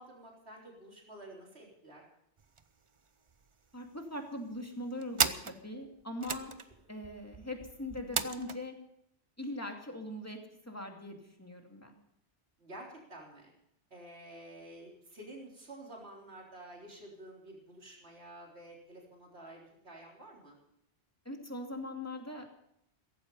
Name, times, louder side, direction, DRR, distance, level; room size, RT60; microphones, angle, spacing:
voice 1, 0.0-2.0 6.4-6.5 12.6-13.5 13.9-20.6, right 1 dB, 65° right, -2 dB, 3.9 m, -50 dB
sound 1, 2.4-2.7 3.0-3.1 3.3-4.0 4.5-8.6, right 5 dB, 30° right, 0.7 m, -36 dB
voice 2, 3.7-6.5 6.9-8.7 9.4-10.4 10.7-12.0 21.2-22.6, left 1 dB, 15° left, 2 dB, 2.5 m, -41 dB
16.5 x 15.5 x 5.4 m, 0.74 s
omnidirectional pair, 1.1 m